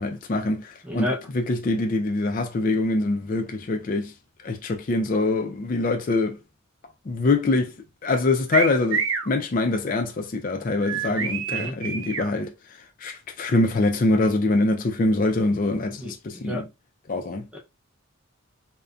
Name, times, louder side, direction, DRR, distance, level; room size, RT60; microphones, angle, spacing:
voice 1, 0.0-1.1 1.3-4.1 4.4-6.4 7.1-7.7 8.0-12.5 13.0-16.6 17.1-17.5, left 2 dB, 40° left, 0.3 m, -24 dB
voice 2, 0.8-1.2 11.1-11.7 16.0-16.6 17.5-17.6, left 1 dB, 5° right, 0.7 m, -32 dB
sound 1, 8.5-9.3 10.8-12.3, right 6 dB, 60° right, 0.5 m, -27 dB
2.5 x 2.1 x 2.4 m
head